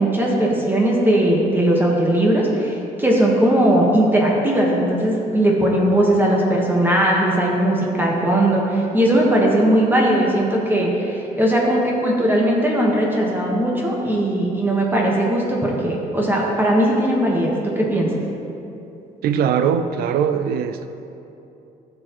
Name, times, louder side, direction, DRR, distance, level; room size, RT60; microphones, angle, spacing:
voice 1, 0.0-18.1, right 1 dB, 15° right, -3 dB, 1.3 m, -18 dB
voice 2, 19.2-20.9, right 8 dB, 75° right, 10 dB, 0.5 m, -20 dB
12.0 x 6.9 x 3.0 m, 2.8 s
cardioid pair, 105°, 16 cm